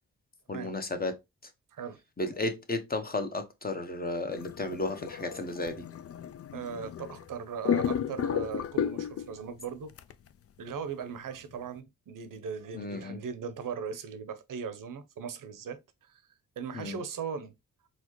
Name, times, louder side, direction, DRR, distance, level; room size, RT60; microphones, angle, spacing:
voice 1, 0.5-1.2 2.2-5.8 12.7-13.2 16.7-17.0, left 2 dB, 25° left, 0.9 m, -33 dB
sound 1, 4.3-7.3 7.7-9.4 10.0-10.1, left 8 dB, 45° left, 0.4 m, -33 dB
voice 2, 6.5-9.9 10.6-16.2 16.6-17.6, right 6 dB, 65° right, 0.8 m, -39 dB
4.1 x 2.3 x 3.0 m
supercardioid pair, 50°, 34 cm